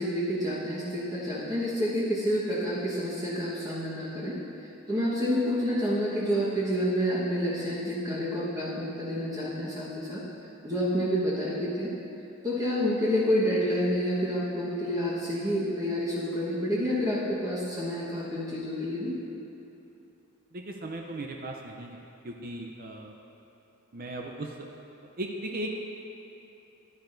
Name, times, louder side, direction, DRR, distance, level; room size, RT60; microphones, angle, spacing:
voice 1, 0.0-4.4 4.9-10.2 10.6-11.9 12.4-19.2, equal, 15° right, -8 dB, 1.3 m, -28 dB
voice 2, 20.5-22.0 22.2-23.1 23.9-24.7 25.2-25.8, right 1 dB, 45° right, 1 dB, 0.6 m, -37 dB
14.5 x 10.5 x 2.6 m, 2.8 s
head